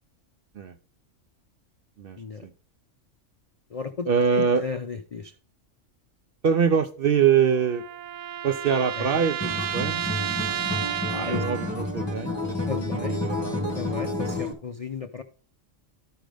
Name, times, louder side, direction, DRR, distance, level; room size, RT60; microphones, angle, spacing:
voice 1, 2.0-2.5 4.1-4.6 6.4-7.8 8.4-10.1 11.2-13.7, right 7 dB, 60° right, 8 dB, 0.6 m, -24 dB
voice 2, 3.7-5.4 9.0-9.3 11.1-11.4 12.7-13.1 13.7-15.2, left 5 dB, 65° left, 7 dB, 0.3 m, -35 dB
sound 1, 7.1-11.9, right 10 dB, 90° right, 1.0 m, -32 dB
Acoustic guitar, 9.4-14.5, left 2 dB, 20° left, 1.4 m, -30 dB
13.5 x 5.1 x 3.4 m, 0.38 s
omnidirectional pair, 1.3 m